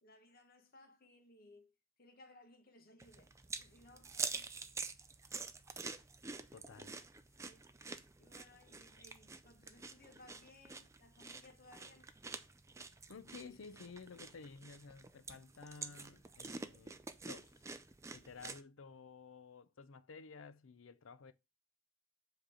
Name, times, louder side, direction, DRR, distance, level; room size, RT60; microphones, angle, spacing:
voice 1, 0.0-3.3 3.6-4.6 6.3-6.5 7.2-7.7 8.2-12.1, left 2 dB, 45° left, 1.3 m, -62 dB
sound 1, 3.0-18.6, right 4 dB, 15° right, 0.4 m, -47 dB
voice 2, 6.5-7.0 13.1-17.8 18.1-21.3, left 4 dB, 75° left, 0.6 m, -54 dB
7.5 x 3.2 x 4.9 m
head